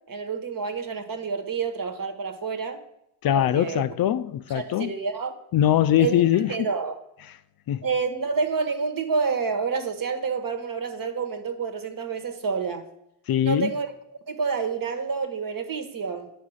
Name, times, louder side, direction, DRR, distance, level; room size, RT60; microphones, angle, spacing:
voice 1, 0.1-2.8 3.3-3.8 4.5-5.3 6.0-6.2 6.5-7.0 7.8-12.9 13.4-13.9 14.3-16.3, right 5 dB, 50° right, 1.2 m, -28 dB
voice 2, 3.2-4.9 5.5-6.5 7.7-7.8 13.3-13.7, left 11 dB, 60° left, 0.5 m, -22 dB
9.9 x 4.1 x 6.3 m
cardioid pair, 85°, 42 cm